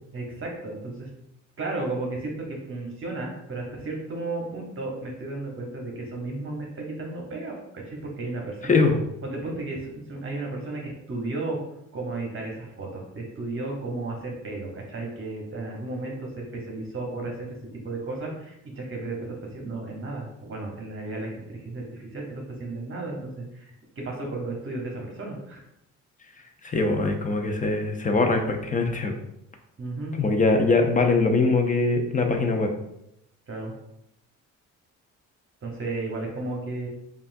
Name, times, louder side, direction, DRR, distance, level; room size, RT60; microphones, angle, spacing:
voice 1, 0.1-1.1 1.6-8.8 9.2-11.6 11.9-25.6 29.8-30.2 33.5-33.7 35.6-36.9, right 2 dB, 45° right, -1 dB, 1.0 m, -34 dB
voice 2, 8.6-9.0 26.6-29.1 30.2-32.7, left 3 dB, 25° left, 4 dB, 0.7 m, -22 dB
5.3 x 2.5 x 2.6 m, 0.80 s
cardioid pair, 90°, 30 cm